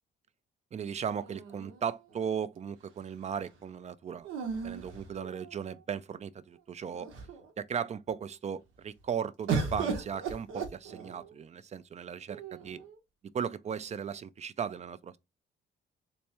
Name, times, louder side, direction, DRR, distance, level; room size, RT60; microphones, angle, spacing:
voice 1, 0.7-4.3 4.6-7.1 7.6-12.8 13.3-15.2, right 7 dB, 35° right, 0.4 m, -37 dB
sound 1, 1.2-2.3 4.2-5.8 6.5-6.6 6.9-7.5 9.5-11.4 12.3-13.0, right 5 dB, 90° right, 1.0 m, -36 dB
3.5 x 3.0 x 2.9 m
cardioid pair, 90°, 20 cm